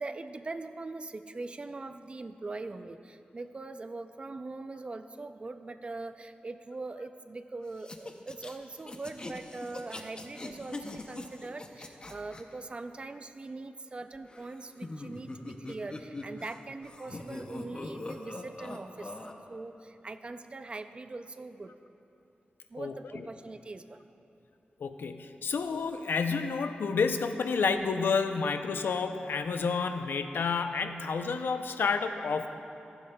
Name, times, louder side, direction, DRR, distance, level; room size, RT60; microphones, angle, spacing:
voice 1, 0.0-19.1 19.5-21.7 22.7-24.0, right 3 dB, 30° right, 10 dB, 0.3 m, -42 dB
Series of evil laughs, 7.8-12.4 14.3-16.6 16.8-19.3, left 2 dB, 25° left, 0.6 m, -42 dB
voice 2, 22.8-23.2 24.8-32.5, left 5 dB, 90° left, 8 dB, 0.5 m, -30 dB
15.0 x 12.0 x 2.2 m, 2.9 s
wide cardioid pair, 150°, 3 cm